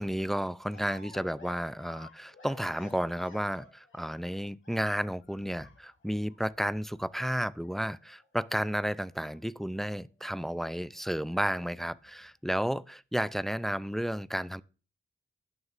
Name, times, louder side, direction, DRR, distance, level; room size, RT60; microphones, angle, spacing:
voice 1, 0.0-14.6, equal, ahead, 0.3 m, -32 dB
sound 1, 0.7-4.4 4.6-9.9 10.2-10.3 10.6-12.5, left 3 dB, 70° left, 1.8 m, -56 dB
18.0 x 6.4 x 2.5 m
wide cardioid pair, 65°, 21 cm